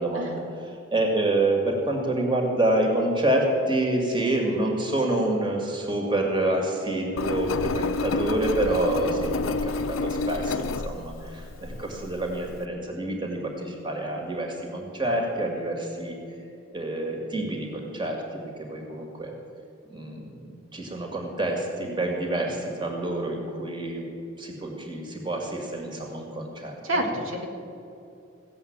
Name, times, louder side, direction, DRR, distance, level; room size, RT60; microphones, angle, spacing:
voice 1, 0.0-16.1 16.7-19.3 19.9-20.4 20.7-24.0 24.4-27.1, right 1 dB, 25° right, 1 dB, 2.1 m, -27 dB
Engine, 7.2-12.6, left 3 dB, 85° left, 0.5 m, -29 dB
voice 2, 26.8-27.5, right 1 dB, 85° right, 2 dB, 1.7 m, -28 dB
16.0 x 7.7 x 8.8 m, 2.6 s
head